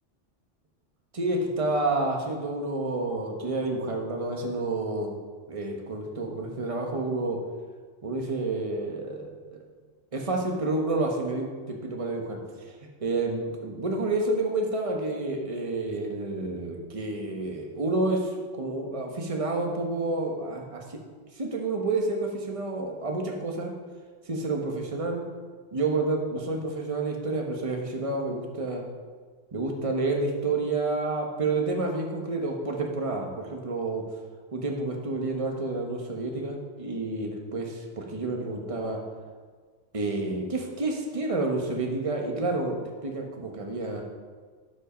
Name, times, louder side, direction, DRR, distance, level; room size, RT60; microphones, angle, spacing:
voice 1, 1.1-5.1 5.5-7.4 8.0-9.3 10.1-12.7 13.0-21.0 21.3-23.7 24.3-25.2 25.7-28.8 29.5-34.0 34.5-39.0 39.9-42.8 43.0-44.0, right 2 dB, 30° right, 1 dB, 1.3 m, -29 dB
12.0 x 5.7 x 5.1 m, 1.5 s
omnidirectional pair, 1.3 m